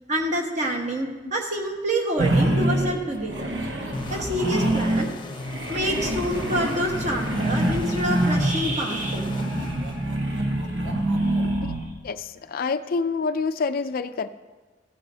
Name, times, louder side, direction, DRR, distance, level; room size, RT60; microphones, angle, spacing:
voice 1, 0.1-3.5 4.1-5.1 5.7-9.3, right 1 dB, 45° right, 0 dB, 1.4 m, -27 dB
sound 1, 2.2-5.2 5.4-12.0, right 1 dB, 80° right, 1.2 m, -25 dB
sound 2, 3.9-10.4, left 2 dB, 25° left, 0.7 m, -37 dB
voice 2, 12.0-14.3, left 4 dB, 55° left, 12 dB, 0.4 m, -27 dB
15.5 x 9.3 x 2.8 m, 1.3 s
head